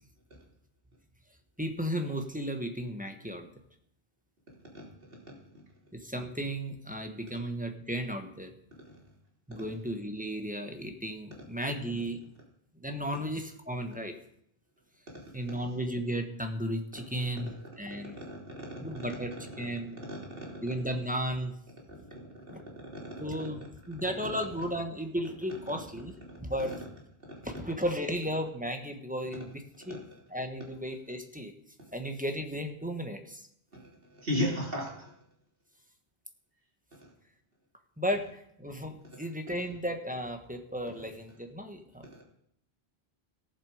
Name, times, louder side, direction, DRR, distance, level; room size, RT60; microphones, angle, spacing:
voice 1, 1.6-3.5 5.9-8.5 9.5-12.2 12.8-14.1 15.3-18.2 18.8-20.0 20.6-21.5 22.5-22.6 23.2-26.1 26.4-26.7 27.4-30.0 30.3-31.5 31.9-33.5 38.0-42.2, equal, 10° right, 5 dB, 1.3 m, -34 dB
voice 2, 17.9-18.5 19.6-19.7 20.1-20.2 20.5-20.6 21.9-22.3 22.9-23.1 26.3-26.4 29.9-30.0 33.7-33.8 34.1-35.1 42.1-42.2, left 1 dB, 60° right, -2 dB, 3.3 m, -35 dB
16.5 x 7.5 x 5.0 m, 0.70 s
omnidirectional pair, 1.1 m